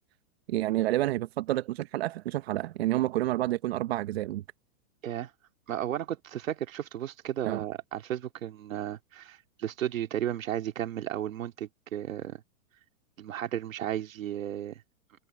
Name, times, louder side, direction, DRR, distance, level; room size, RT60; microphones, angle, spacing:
voice 1, 0.5-4.4 7.5-7.6, right 15 dB, 50° right, 0.8 m, -29 dB
voice 2, 5.7-12.4 13.2-14.8, right 11 dB, 75° right, 2.3 m, -34 dB
hypercardioid pair, 160°, 40 cm